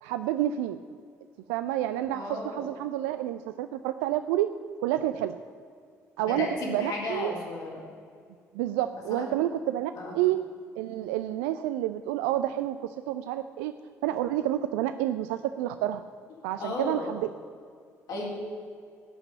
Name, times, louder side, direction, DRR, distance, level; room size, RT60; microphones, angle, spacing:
voice 1, 0.0-0.8 1.5-4.5 4.8-5.4 6.2-7.3 8.5-10.4 10.8-13.7 14.0-16.0 16.4-17.3, right 13 dB, 70° right, 10 dB, 0.4 m, -29 dB
voice 2, 2.1-2.6 6.2-7.8 8.9-9.3 10.0-10.2 16.6-17.1 18.1-18.3, left 2 dB, 55° left, -2 dB, 3.6 m, -34 dB
17.0 x 5.9 x 9.1 m, 2.2 s
figure-of-eight pair, 50°, 8 cm